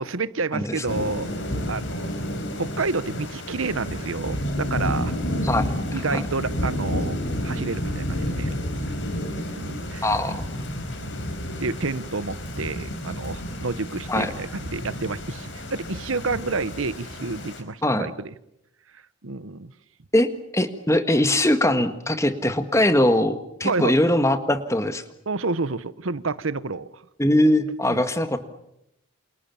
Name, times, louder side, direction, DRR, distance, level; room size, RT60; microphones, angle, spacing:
voice 1, 0.0-1.3 1.7-2.1 2.6-5.1 5.9-8.5 9.6-10.1 11.0-11.1 11.6-18.3 18.9-19.7 23.6-24.0 25.3-27.0 27.9-28.0, right 3 dB, 75° right, 16 dB, 1.0 m, -29 dB
voice 2, 0.5-0.8 5.4-5.7 6.1-6.2 10.0-10.4 14.1-14.3 17.8-18.1 20.1-25.0 27.2-28.4, left 1 dB, 15° left, 9 dB, 1.7 m, -21 dB
Thunder / Rain, 0.9-17.6, equal, 60° left, 4.8 m, -30 dB
29.0 x 28.0 x 7.2 m, 0.81 s
head